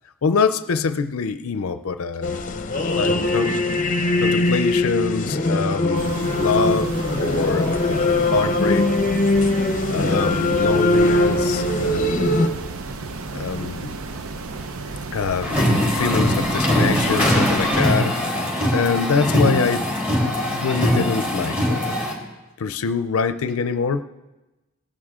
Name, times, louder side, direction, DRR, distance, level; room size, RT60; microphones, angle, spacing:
voice 1, 0.2-2.4 2.9-3.6 4.2-6.9 7.2-8.9 9.9-12.2 13.3-14.0 15.1-18.2 18.7-19.9 20.5-22.0 22.6-24.0, left 5 dB, 75° left, 11 dB, 0.5 m, -24 dB
sound 1, 2.2-12.5, left 2 dB, 40° left, 0.8 m, -21 dB
sound 2, 5.9-18.0, right 3 dB, 80° right, 0.8 m, -33 dB
sound 3, 15.4-22.1, equal, 5° right, 3.3 m, -21 dB
18.5 x 11.0 x 3.6 m, 1.1 s
head